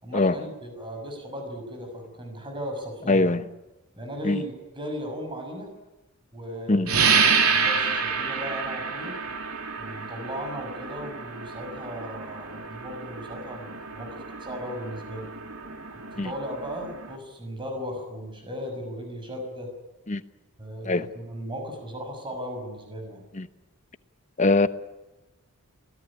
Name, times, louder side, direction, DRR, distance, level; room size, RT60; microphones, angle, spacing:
voice 1, 0.0-3.3 3.9-5.7 6.3-9.2 9.8-15.3 16.1-19.7 20.6-23.2, equal, 20° right, 4 dB, 6.2 m, -36 dB
voice 2, 3.1-3.4 4.2-4.4 6.7-6.9 16.2-16.3 20.1-20.2 20.9-21.1 23.3-23.5 24.4-24.7, left 2 dB, 35° left, 12 dB, 1.0 m, -21 dB
sound 1, 6.9-17.2, right 5 dB, 90° right, 2.9 m, -28 dB
25.5 x 18.0 x 9.9 m, 1.0 s
head